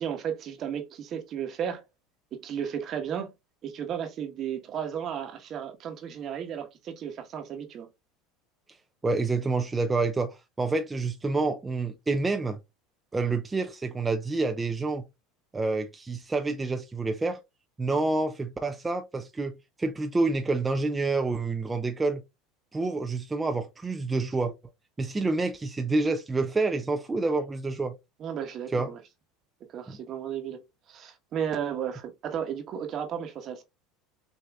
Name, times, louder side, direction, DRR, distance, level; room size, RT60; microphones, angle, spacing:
voice 1, 0.0-1.8 2.3-3.3 3.6-7.9 28.2-29.0 29.7-33.6, right 8 dB, 45° right, 1.1 m, -34 dB
voice 2, 9.0-12.6 13.1-15.0 15.5-17.4 17.8-22.2 22.7-24.5 25.0-27.9 28.7-28.9 29.9-30.0, right 3 dB, 15° right, 0.5 m, -28 dB
6.2 x 2.7 x 2.3 m
hypercardioid pair, 80°, 0 cm